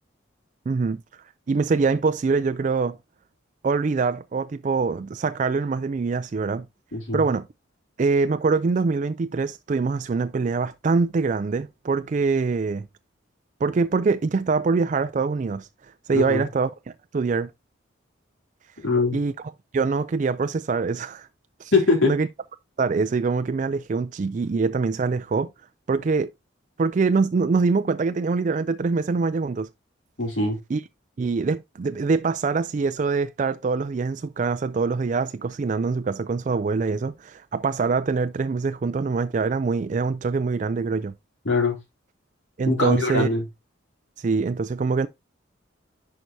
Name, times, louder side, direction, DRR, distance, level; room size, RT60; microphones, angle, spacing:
voice 1, 0.7-1.0 1.5-3.0 3.6-6.7 7.1-7.5 8.0-12.9 13.6-15.7 16.1-16.7 17.1-17.5 19.1-19.3 19.7-21.3 21.6-21.7 22.0-22.3 22.8-25.5 25.9-26.3 26.8-29.7 30.7-30.8 31.2-41.1 42.6-43.3 44.2-45.1, right 4 dB, 40° right, 0.3 m, -24 dB
voice 2, 6.9-7.2 16.1-16.4 18.8-19.2 21.7-22.1 30.2-30.6 41.4-41.8 42.7-43.4, left 3 dB, 70° left, 2.9 m, -22 dB
10.5 x 4.7 x 2.7 m
head